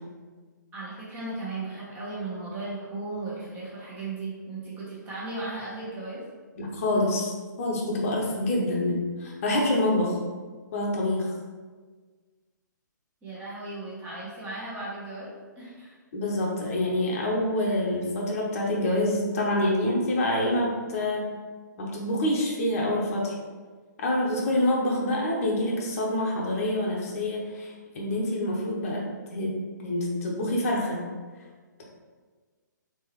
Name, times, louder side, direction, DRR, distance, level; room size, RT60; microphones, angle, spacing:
voice 1, 0.7-6.2 13.2-16.0, right 2 dB, 15° right, -8 dB, 1.1 m, -36 dB
voice 2, 6.6-10.2 10.7-11.3 16.1-21.3 21.8-23.3 24.0-31.0, left 1 dB, 45° left, -2 dB, 0.8 m, -26 dB
3.5 x 3.0 x 3.0 m, 1.4 s
hypercardioid pair, 135°, 10 cm